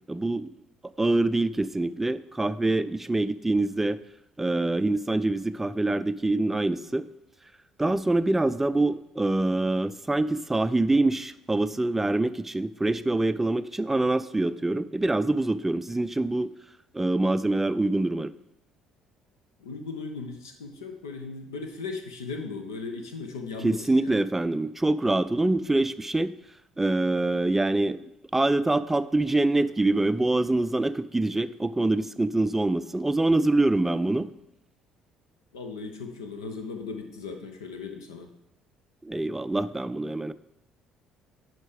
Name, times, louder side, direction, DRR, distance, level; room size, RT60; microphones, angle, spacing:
voice 1, 0.1-0.5 1.0-4.0 4.4-7.1 7.8-16.5 16.9-18.3 23.6-26.3 26.8-28.0 28.3-34.3 39.0-40.3, right 2 dB, 10° right, 14 dB, 0.4 m, -25 dB
voice 2, 19.6-24.2 35.5-38.3, left 4 dB, 75° left, 5 dB, 1.0 m, -37 dB
10.5 x 4.4 x 5.1 m, 0.83 s
figure-of-eight pair, 50°, 2 cm